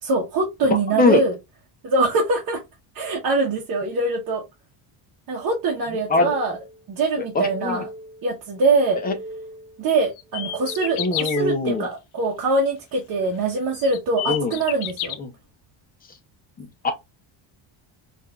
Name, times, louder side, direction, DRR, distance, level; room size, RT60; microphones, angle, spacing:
voice 1, 0.0-1.3 1.8-2.6 2.9-4.4 5.3-6.6 6.9-7.8 8.2-9.0 9.8-15.2, right 3 dB, 45° right, 1.0 m, -23 dB
voice 2, 0.6-1.2 6.1-6.3 7.3-7.8 9.0-9.1 11.0-11.9 14.3-14.5 15.2-15.3 16.1-16.2 16.6-16.9, left 3 dB, 20° left, 0.5 m, -22 dB
sound 1, 5.7-6.8 7.2-8.3 8.7-9.8 10.2-11.4, right 1 dB, 65° right, 0.9 m, -40 dB
sound 2, 10.2-11.4 13.1-13.2 13.7-15.2, left 12 dB, 75° left, 0.6 m, -29 dB
4.6 x 2.6 x 2.2 m
cardioid pair, 165°, 48 cm